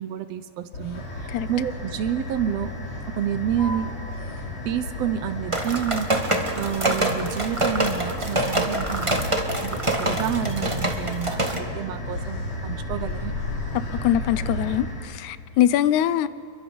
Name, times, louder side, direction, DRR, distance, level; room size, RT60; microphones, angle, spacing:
voice 1, 0.0-2.7 3.1-3.9 4.7-9.2 9.6-13.3, right 10 dB, 70° right, 1.7 m, -29 dB
Motor vehicle (road), 0.7-14.8, left 1 dB, 45° left, 3.8 m, -33 dB
sound 1, 0.9-15.1, left 2 dB, 75° left, 7.0 m, -45 dB
sound 2, 5.5-11.6, right 1 dB, 20° right, 0.9 m, -25 dB
voice 2, 13.9-16.3, left 11 dB, 90° left, 2.1 m, -22 dB
29.0 x 23.0 x 5.4 m
omnidirectional pair, 3.3 m